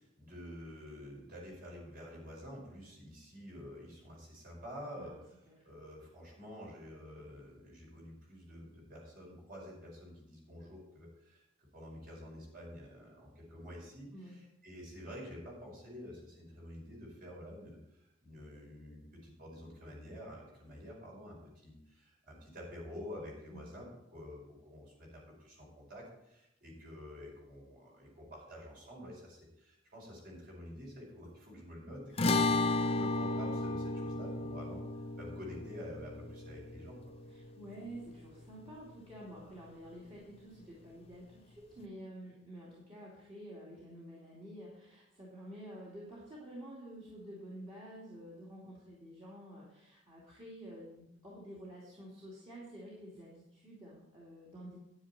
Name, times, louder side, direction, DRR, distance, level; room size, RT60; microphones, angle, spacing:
voice 1, 0.0-34.8 35.1-37.0, left 1 dB, 50° right, -2 dB, 5.1 m, -49 dB
sound 1, 32.2-38.7, left 2 dB, 30° left, 0.6 m, -34 dB
voice 2, 37.3-54.8, right 1 dB, 30° right, -6 dB, 2.6 m, -50 dB
10.0 x 9.9 x 4.3 m, 0.84 s
head